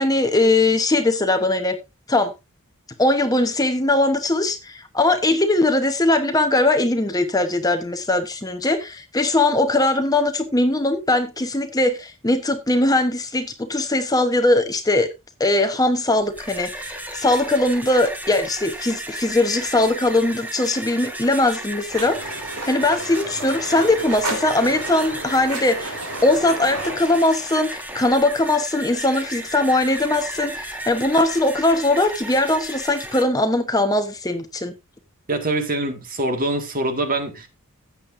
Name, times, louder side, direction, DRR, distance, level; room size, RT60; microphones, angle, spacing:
voice 1, 0.0-1.8 2.1-2.3 3.0-15.1 15.4-34.7, left 2 dB, 15° left, 0.9 m, -20 dB
sound 1, 16.2-33.2, right 1 dB, 10° right, 1.5 m, -34 dB
sound 2, 21.9-26.9, right 2 dB, 85° right, 3.9 m, -32 dB
voice 2, 35.3-37.5, right 2 dB, 40° right, 1.9 m, -24 dB
14.5 x 8.5 x 2.6 m
head